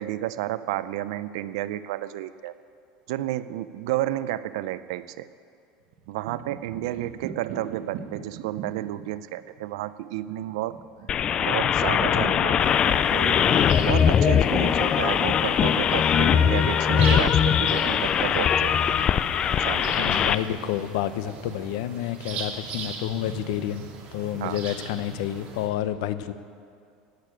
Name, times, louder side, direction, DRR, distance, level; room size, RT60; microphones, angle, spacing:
voice 1, 0.0-2.5 3.1-5.3 6.1-10.8 11.4-13.4 13.8-19.0 19.6-20.3 24.4-24.6, right 14 dB, 85° right, 15 dB, 0.6 m, -31 dB
sound 1, 5.9-15.6, right 7 dB, 65° right, 1.1 m, -41 dB
sound 2, 11.1-20.4, left 8 dB, 30° left, 0.4 m, -21 dB
sound 3, 12.6-25.7, right 5 dB, 45° right, 2.5 m, -40 dB
voice 2, 20.0-23.8 24.1-26.3, left 12 dB, 80° left, 12 dB, 0.8 m, -29 dB
17.5 x 6.8 x 9.1 m, 2.3 s
cardioid pair, 150°, 3 cm